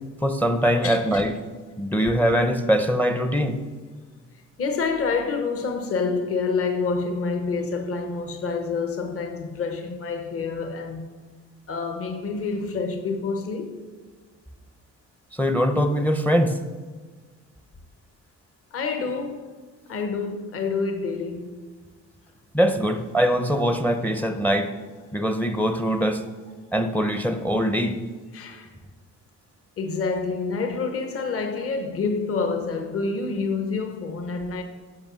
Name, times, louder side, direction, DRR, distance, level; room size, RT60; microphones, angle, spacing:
voice 1, 0.2-1.3 1.8-3.6 15.3-16.6 22.5-24.8 25.1-26.2 26.7-28.0, equal, 5° left, 0.5 m, -22 dB
voice 2, 0.8-1.2 4.6-11.1 11.7-13.8 18.7-19.6 19.9-21.6 28.3-28.7 29.8-34.6, left 4 dB, 45° left, 1.0 m, -27 dB
10.5 x 5.5 x 6.2 m
cardioid pair, 145°, 31 cm